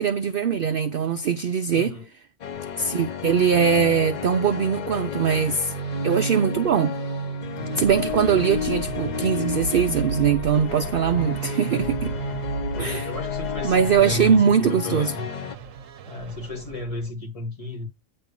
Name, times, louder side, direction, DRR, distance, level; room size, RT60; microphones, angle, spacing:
voice 1, 0.0-2.0 2.8-5.7 6.0-7.0 7.8-12.2 12.8-13.1 13.6-15.1, right 7 dB, 55° right, 0.6 m, -21 dB
voice 2, 1.7-2.1 12.7-15.3 16.1-17.9, left 3 dB, 25° left, 2.0 m, -33 dB
sound 1, 2.4-15.5, left 8 dB, 60° left, 0.4 m, -32 dB
sound 2, 5.2-17.1, right 6 dB, 75° right, 1.2 m, -33 dB
9.2 x 3.3 x 6.7 m
omnidirectional pair, 1.4 m